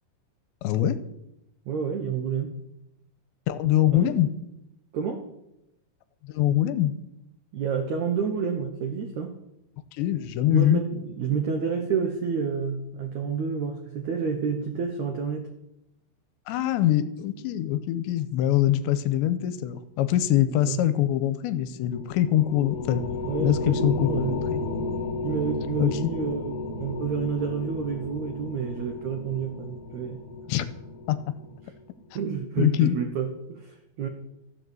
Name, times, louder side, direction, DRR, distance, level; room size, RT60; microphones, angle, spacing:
voice 1, 0.6-1.0 3.5-4.3 6.2-6.9 9.9-10.8 16.5-23.0 23.4-24.6 25.8-26.1 30.5-30.7 31.1-31.3 32.6-33.0, left 12 dB, 85° left, 14 dB, 2.9 m, -23 dB
voice 2, 1.7-2.6 3.9-4.1 4.9-5.2 7.5-9.4 10.5-15.5 20.6-20.8 23.2-24.4 25.2-30.2 31.6-31.7 32.2-34.1, right 6 dB, 90° right, 5 dB, 1.6 m, -29 dB
sound 1, 21.9-31.7, left 3 dB, 50° left, 2.7 m, -33 dB
15.0 x 8.0 x 7.8 m, 0.83 s
omnidirectional pair, 5.2 m